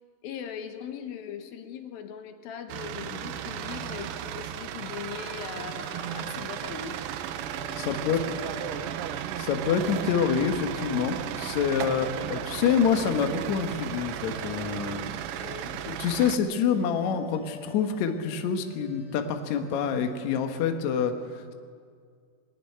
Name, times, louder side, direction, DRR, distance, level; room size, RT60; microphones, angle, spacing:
voice 1, 0.2-7.0 7.8-8.5 8.8-9.0 11.9-12.2 15.3-15.8, left 8 dB, 85° left, 7 dB, 3.0 m, -40 dB
sound 1, 2.7-16.4, right 10 dB, 80° right, 2.3 m, -35 dB
sound 2, 6.1-20.6, left 2 dB, 45° left, 5.8 m, -50 dB
voice 2, 7.8-8.2 9.4-15.5 15.9-21.5, left 7 dB, 65° left, 6 dB, 2.2 m, -27 dB
21.0 x 13.5 x 9.4 m, 2.1 s
omnidirectional pair, 4.1 m